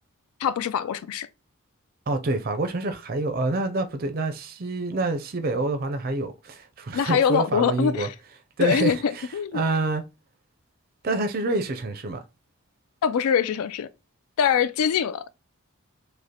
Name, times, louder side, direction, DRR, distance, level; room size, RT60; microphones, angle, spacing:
voice 1, 0.4-1.3 6.9-8.1 8.6-9.6 13.0-13.9 14.4-15.3, left 7 dB, 80° left, 0.3 m, -23 dB
voice 2, 2.1-8.1 8.6-9.3 9.5-10.0 11.0-12.2, right 2 dB, 40° right, 0.4 m, -27 dB
5.0 x 2.1 x 2.8 m
head